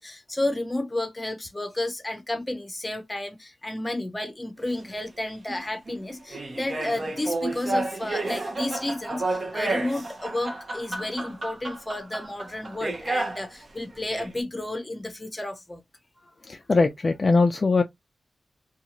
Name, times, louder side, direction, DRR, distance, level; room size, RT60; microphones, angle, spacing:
voice 1, 0.0-15.8 16.2-16.3, left 1 dB, 15° left, 0.7 m, -32 dB
sound 1, 4.7-4.8 5.5-13.5 13.9-14.3, right 2 dB, 40° right, 0.7 m, -31 dB
voice 2, 16.4-17.8, left 3 dB, 35° left, 0.3 m, -21 dB
2.7 x 2.3 x 2.8 m
wide cardioid pair, 105°, 0 cm